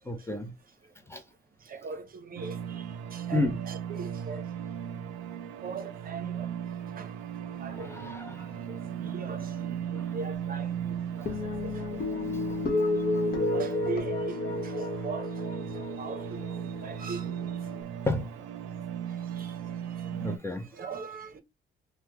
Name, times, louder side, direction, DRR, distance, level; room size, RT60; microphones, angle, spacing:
voice 1, 0.1-0.5 1.1-1.2 3.3-3.6 7.7-12.5 18.1-18.3 20.1-20.7, left 2 dB, 10° left, 0.6 m, -35 dB
voice 2, 1.6-4.5 5.6-6.5 6.9-7.2 7.4-12.1 13.3-17.5 19.2-19.6 20.0-20.1 20.7-21.4, right 4 dB, 45° right, 0.7 m, -41 dB
sound 1, 2.4-20.4, right 9 dB, 85° right, 0.5 m, -37 dB
sound 2, 11.3-17.8, left 3 dB, 50° left, 1.0 m, -32 dB
2.9 x 2.1 x 3.4 m
cardioid pair, 90°, 20 cm